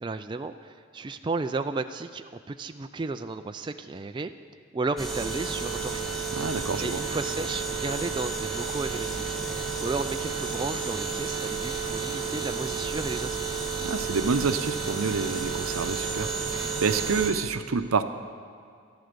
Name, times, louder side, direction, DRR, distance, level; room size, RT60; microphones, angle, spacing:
voice 1, 0.0-4.3 4.7-6.1 6.8-9.3 9.8-13.4, right 3 dB, 20° right, 8 dB, 0.3 m, -33 dB
sound 1, 5.0-17.3, right 5 dB, ahead, 1.6 m, -31 dB
voice 2, 6.4-7.0 13.8-18.0, right 5 dB, 85° right, 10 dB, 0.7 m, -28 dB
13.0 x 11.5 x 6.7 m, 2.3 s
head